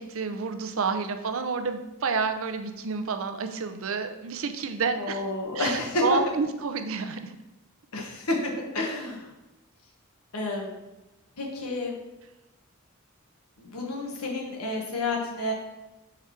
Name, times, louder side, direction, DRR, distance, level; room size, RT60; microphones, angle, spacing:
voice 1, 0.0-5.2 5.5-7.4, right 5 dB, 65° right, 7 dB, 0.6 m, -29 dB
voice 2, 4.9-6.0 7.9-9.3 10.3-10.8 11.4-12.0 13.6-15.5, left 2 dB, 85° left, 0 dB, 1.3 m, -30 dB
4.8 x 4.8 x 5.7 m, 1.0 s
head